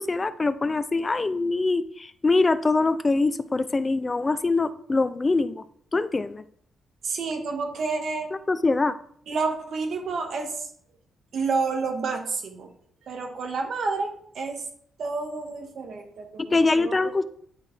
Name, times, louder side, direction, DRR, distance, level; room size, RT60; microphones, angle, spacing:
voice 1, 0.0-5.6 5.9-6.4 8.3-8.9 16.5-17.3, left 3 dB, 25° left, 13 dB, 0.3 m, -23 dB
voice 2, 7.0-8.3 9.3-10.7 11.3-12.7 13.1-14.6 15.0-17.3, right 4 dB, 60° right, 3 dB, 1.3 m, -29 dB
10.5 x 4.1 x 3.2 m, 0.65 s
cardioid pair, 115°, 0 cm